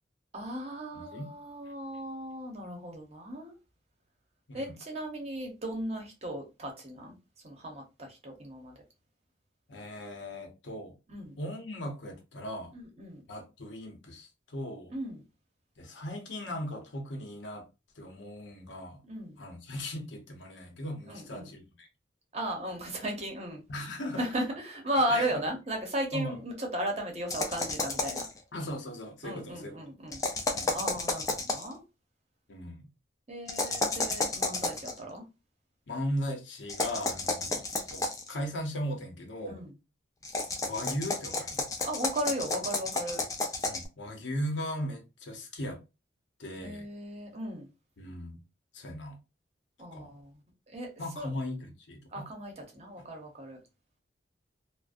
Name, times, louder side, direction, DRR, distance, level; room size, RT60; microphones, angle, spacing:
voice 1, 0.3-3.5 4.5-7.2 7.4-8.7 11.1-11.4 12.7-13.2 14.9-15.2 19.0-19.4 21.1-21.5 22.3-23.6 24.2-28.2 29.2-30.2 30.7-31.8 33.3-35.2 37.5-37.6 39.5-39.7 41.8-43.2 46.6-47.7 49.8-50.3 50.7-50.9 51.2-51.3 52.1-53.6, right 1 dB, 35° right, 0.7 m, -35 dB
voice 2, 0.9-1.3 4.5-4.8 9.7-10.9 11.4-12.7 13.3-14.9 15.8-17.7 18.0-19.0 19.4-21.9 23.7-24.2 25.1-25.3 26.1-26.4 28.5-29.8 30.5-30.7 32.5-32.9 35.9-39.6 40.7-41.7 43.6-45.8 46.4-46.9 48.0-48.4 48.7-49.2 49.9-50.1 51.0-52.3 53.0-53.1, equal, 85° left, 0.7 m, -38 dB
sound 1, 27.3-28.4 30.1-31.7 33.5-34.9 36.7-38.3 40.2-43.9, left 3 dB, 20° left, 0.3 m, -31 dB
2.4 x 2.0 x 2.4 m
head